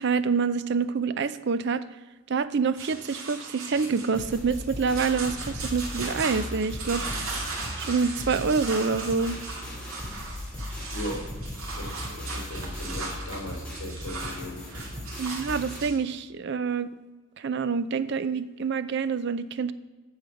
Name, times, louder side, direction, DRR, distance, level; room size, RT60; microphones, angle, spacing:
voice 1, 0.0-1.8 2.3-7.0 7.8-9.4 15.2-16.9 17.4-19.7, right 5 dB, 50° right, 14 dB, 0.4 m, -27 dB
sound 1, 2.8-16.0, right 3 dB, 70° right, 2.2 m, -38 dB
sound 2, 4.1-15.8, left 1 dB, 5° left, 2.4 m, -38 dB
voice 2, 11.8-14.6, left 1 dB, 60° left, -1 dB, 3.7 m, -38 dB
9.1 x 6.6 x 5.8 m, 1.2 s
head